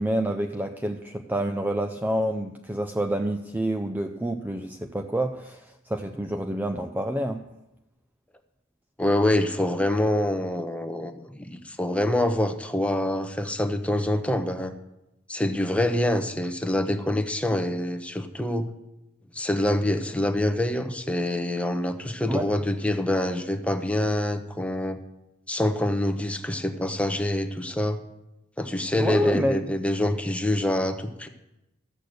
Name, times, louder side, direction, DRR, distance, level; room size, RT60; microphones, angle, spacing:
voice 1, 0.0-7.4 22.3-22.5 29.0-29.6, right 1 dB, 10° right, 5 dB, 0.5 m, -28 dB
voice 2, 9.0-14.7 15.3-18.7 19.3-25.0 25.5-28.0 28.6-31.3, left 1 dB, 5° left, 7 dB, 0.8 m, -26 dB
13.5 x 6.7 x 7.8 m, 0.93 s
head